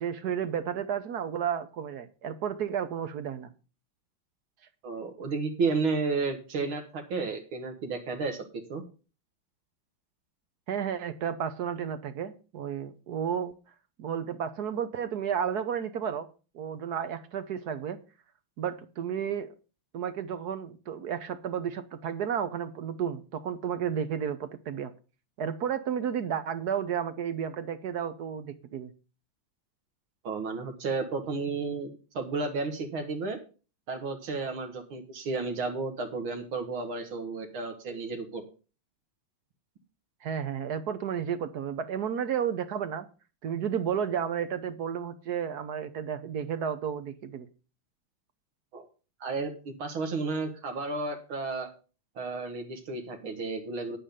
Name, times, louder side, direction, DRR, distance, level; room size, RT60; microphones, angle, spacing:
voice 1, 0.0-3.5 10.7-13.5 14.0-16.3 16.5-18.0 18.6-19.5 19.9-24.9 25.4-28.9 40.2-43.1 43.4-47.5, right 8 dB, 60° right, 11 dB, 1.2 m, -32 dB
voice 2, 4.8-8.4 8.7-8.8 30.2-33.4 33.9-38.4 48.7-48.9 49.2-51.7 52.2-54.0, right 4 dB, 80° right, 4 dB, 2.4 m, -32 dB
9.7 x 8.8 x 5.1 m, 0.34 s
omnidirectional pair, 2.2 m